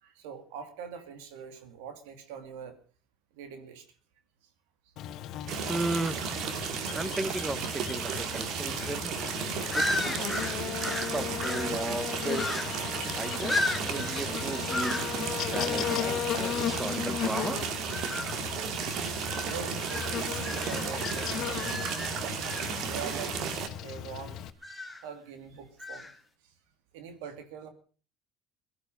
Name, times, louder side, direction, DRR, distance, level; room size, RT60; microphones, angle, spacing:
voice 1, 0.0-2.8 3.3-3.9 5.5-5.7 19.5-22.5 22.8-23.4 23.8-26.1 26.4-26.5 26.9-27.7, right 7 dB, 85° right, 8 dB, 2.5 m, -44 dB
Buzz, 5.0-24.5, left 11 dB, 60° left, 1.3 m, -36 dB
sound 1, 5.5-23.7, right 7 dB, 65° right, 2.3 m, -34 dB
voice 2, 5.7-6.4 6.9-9.1 9.7-10.2 11.0-12.6 13.1-17.7, right 2 dB, 15° right, 17 dB, 1.4 m, -35 dB
sound 2, 8.7-8.9 9.2-9.4 9.7-11.8 12.3-12.9 13.5-14.3 14.7-15.2 15.8-16.1 17.9-18.4 19.2-23.2 24.6-25.1 25.8-26.1, left 2 dB, 10° left, 2.5 m, -35 dB
17.5 x 13.0 x 5.4 m, 0.39 s
supercardioid pair, 85°, 0 cm